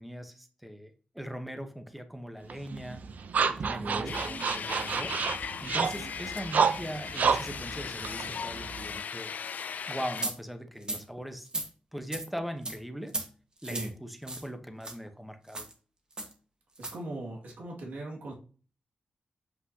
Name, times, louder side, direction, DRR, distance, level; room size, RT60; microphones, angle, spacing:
voice 1, 0.0-3.0 3.5-5.2 5.6-9.3 9.9-11.6 11.9-13.2 13.6-15.7, equal, ahead, 7 dB, 0.9 m, -40 dB
sound 1, 2.5-9.0, right 6 dB, 70° right, 0.6 m, -30 dB
voice 2, 3.8-4.2 13.6-13.9 16.8-18.3, right 1 dB, 90° right, -2 dB, 2.1 m, -38 dB
sound 2, 4.1-10.3, left 6 dB, 70° left, 0.3 m, -38 dB
sound 3, 10.2-10.3 10.8-11.0 11.4-11.7 12.1-12.3 12.6-12.8 13.1-13.3 13.6-13.9 14.3-14.5 14.8-14.9 15.5-15.7 16.2-16.3 16.7-16.9, right 2 dB, 30° right, 1.4 m, -35 dB
7.8 x 5.4 x 2.8 m, 0.38 s
wide cardioid pair, 120°, 3 cm